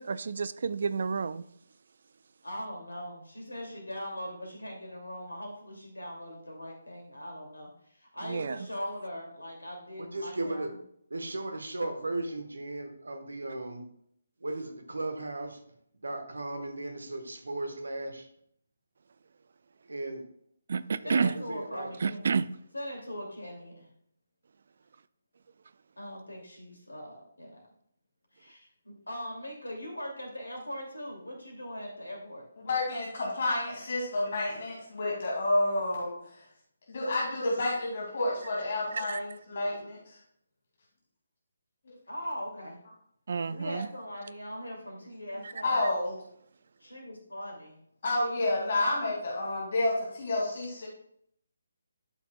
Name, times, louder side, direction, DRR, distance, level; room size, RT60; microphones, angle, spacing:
voice 1, 0.0-1.4 8.2-8.7 20.7-21.3 22.0-22.5 38.9-39.2 43.3-43.9 45.4-45.5, right 5 dB, 50° right, 16 dB, 0.3 m, -30 dB
voice 2, 2.4-10.8 21.0-22.2 22.7-23.9 26.0-27.6 28.3-32.4 42.1-42.8 43.5-45.8 46.8-47.7, equal, 75° left, -1 dB, 2.5 m, -40 dB
voice 3, 10.0-10.7 11.1-13.8 14.4-15.5 16.0-18.3 19.9-20.2 21.0-21.9, right 2 dB, 70° right, 5 dB, 1.3 m, -36 dB
voice 4, 32.6-36.1 36.9-40.0 45.6-46.2 48.0-50.9, left 2 dB, 45° left, -4 dB, 2.5 m, -29 dB
11.0 x 5.8 x 2.3 m, 0.68 s
figure-of-eight pair, 145°, 0 cm